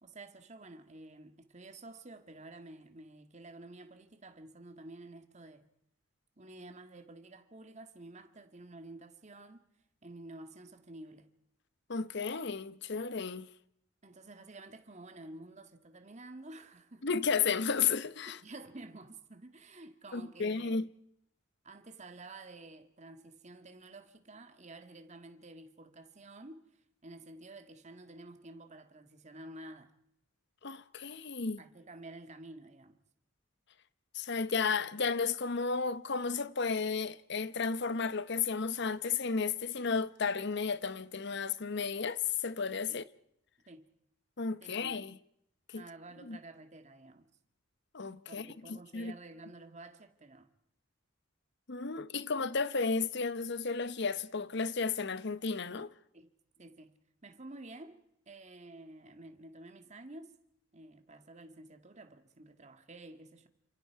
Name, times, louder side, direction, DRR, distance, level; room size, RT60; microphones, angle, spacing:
voice 1, 0.0-5.7 6.4-9.7 10.0-11.3 14.0-17.1 18.3-20.8 21.6-26.7 27.0-29.9 31.6-33.0 42.9-43.0 43.7-43.9 44.6-45.0 45.7-47.3 48.3-50.5 56.1-57.0 57.2-60.3 60.7-63.5, right 2 dB, 35° right, 1.8 m, -51 dB
voice 2, 11.9-13.5 17.0-18.4 20.1-20.9 30.6-31.6 34.1-43.0 44.4-45.2 45.7-45.8 46.2-46.4 47.9-49.1 51.7-55.9, left 5 dB, 55° left, 0.9 m, -33 dB
29.0 x 26.5 x 4.7 m
head